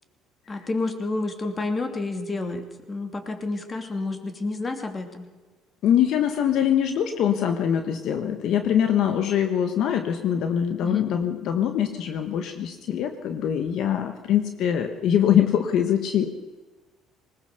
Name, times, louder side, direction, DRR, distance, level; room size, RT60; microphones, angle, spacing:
voice 1, 0.5-5.3 10.8-11.1, left 3 dB, 25° left, 6 dB, 2.9 m, -30 dB
voice 2, 5.8-16.3, left 9 dB, 65° left, 7 dB, 1.5 m, -23 dB
20.0 x 19.5 x 6.9 m, 1.3 s
supercardioid pair, 90°, 0 cm